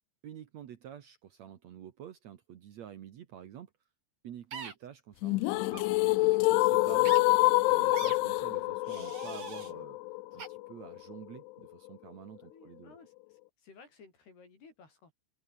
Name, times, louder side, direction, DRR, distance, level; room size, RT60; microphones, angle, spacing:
voice 1, 0.2-3.7 4.2-7.2 7.7-10.0 10.3-12.9, right 10 dB, 80° right, 1.5 m, -48 dB
sound 1, 4.5-4.7 5.7-5.9 7.0-7.2 7.9-8.2 8.8-9.7 10.4-10.5, right 6 dB, 40° right, 4.6 m, -42 dB
sound 2, 5.2-11.2, left 21 dB, 85° left, 3.1 m, -27 dB
voice 2, 9.6-9.9 12.4-15.1, left 4 dB, 55° left, 8.1 m, -57 dB
open air
omnidirectional pair, 5.5 m